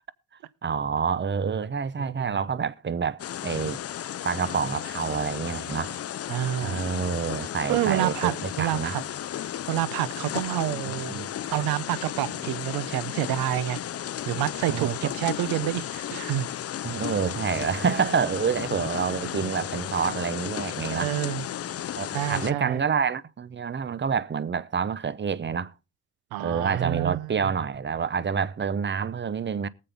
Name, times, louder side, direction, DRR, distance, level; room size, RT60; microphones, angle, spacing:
voice 1, 0.6-3.8 4.2-6.0 6.6-9.0 10.8-11.3 14.7-15.0 16.8-21.1 22.0-25.7 26.4-29.7, right 6 dB, 30° right, 0.8 m, -28 dB
voice 2, 2.0-2.3 6.3-6.9 7.7-9.0 9.7-11.2 11.5-13.8 14.3-16.5 20.9-21.5 22.1-22.8 26.3-27.5, right 14 dB, 80° right, 0.8 m, -28 dB
sound 1, 3.2-22.5, left 11 dB, 40° left, 0.5 m, -34 dB
19.0 x 7.7 x 3.5 m
supercardioid pair, 60°, 36 cm